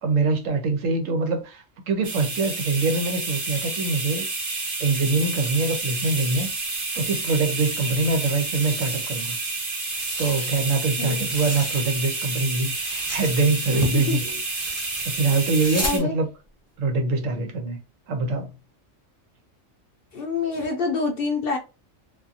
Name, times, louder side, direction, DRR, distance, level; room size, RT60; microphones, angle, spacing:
voice 1, 0.0-4.3 4.8-6.5 6.9-9.4 10.2-14.4 15.0-16.3 16.8-17.8 18.1-18.5, right 3 dB, 75° right, 1.1 m, -24 dB
sound 1, 2.0-16.0, right 3 dB, 45° right, 1.0 m, -29 dB
sound 2, 6.4-8.1 8.4-9.4 9.7-12.2 12.5-16.0, left 1 dB, 15° left, 0.6 m, -38 dB
voice 2, 13.7-14.2 15.8-16.1 20.1-21.6, left 4 dB, 60° left, 0.7 m, -26 dB
2.6 x 2.5 x 2.6 m
omnidirectional pair, 1.4 m